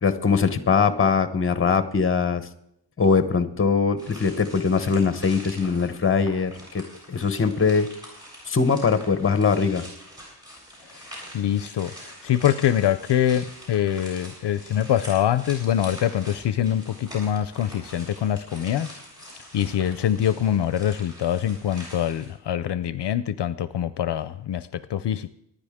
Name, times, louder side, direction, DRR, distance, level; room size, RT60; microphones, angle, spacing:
voice 1, 0.0-2.4 3.0-7.9 8.5-9.8, left 5 dB, 30° left, 11 dB, 0.9 m, -22 dB
sound 1, 4.0-22.3, equal, 10° right, 7.3 m, -44 dB
voice 2, 11.3-25.3, left 10 dB, 70° left, 14 dB, 0.5 m, -24 dB
25.0 x 9.9 x 3.6 m, 0.78 s
wide cardioid pair, 180°, 44 cm